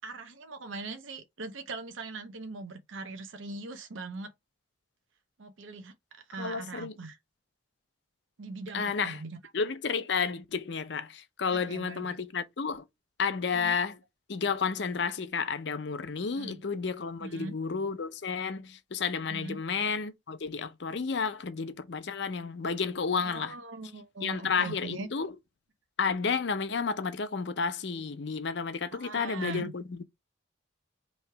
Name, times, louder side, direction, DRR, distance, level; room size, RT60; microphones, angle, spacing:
voice 1, 0.0-4.3 5.4-7.2 8.4-9.4 11.5-12.2 13.5-13.8 16.4-16.6 17.2-17.6 19.3-19.6 23.2-25.1 28.9-29.7, right 3 dB, 80° right, 0.6 m, -41 dB
voice 2, 6.4-6.9 8.7-9.2 9.5-12.8 13.2-14.0 14.3-23.5 24.2-25.3 26.0-30.0, left 5 dB, 60° left, 0.6 m, -31 dB
3.1 x 2.8 x 4.5 m
head